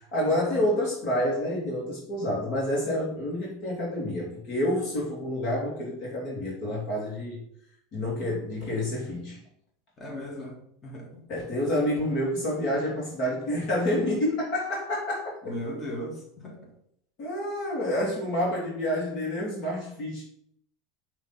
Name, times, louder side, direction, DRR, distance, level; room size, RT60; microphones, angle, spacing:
voice 1, 0.1-7.4 7.9-9.4 11.3-15.5 17.2-20.2, left 1 dB, 50° left, -4 dB, 2.1 m, -28 dB
voice 2, 10.0-10.6 10.8-11.0 15.5-16.2 16.4-16.5, equal, 25° left, -1 dB, 1.7 m, -36 dB
5.9 x 3.1 x 5.6 m, 0.69 s
supercardioid pair, 135°, 0 cm